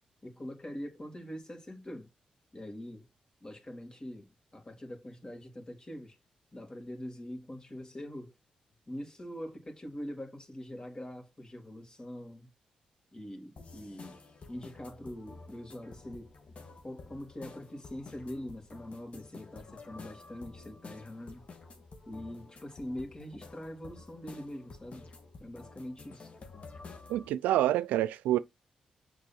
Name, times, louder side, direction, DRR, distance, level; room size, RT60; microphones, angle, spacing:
voice 1, 0.2-2.1 2.5-3.1 3.4-6.2 6.5-8.3 8.9-12.5 13.1-14.2 14.5-16.3 16.8-21.5 22.1-25.1 25.4-26.3, left 1 dB, 30° left, 3.6 m, -43 dB
sound 1, 13.6-27.3, left 3 dB, 50° left, 2.2 m, -51 dB
voice 2, 27.1-28.4, right 13 dB, 90° right, 0.4 m, -27 dB
6.8 x 4.7 x 6.2 m
supercardioid pair, 50°, 3 cm